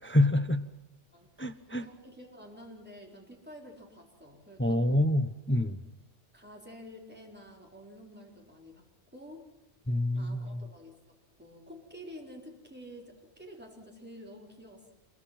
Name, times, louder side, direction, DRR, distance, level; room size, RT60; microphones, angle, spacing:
voice 1, 0.0-0.7 1.4-1.9 4.6-5.8 9.9-10.7, left 1 dB, 10° left, 9 dB, 0.8 m, -27 dB
voice 2, 1.1-5.0 6.3-8.9 9.1-9.5 10.2-14.9, equal, 10° right, 0 dB, 4.0 m, -49 dB
26.5 x 22.5 x 5.9 m, 0.87 s
omnidirectional pair, 1.2 m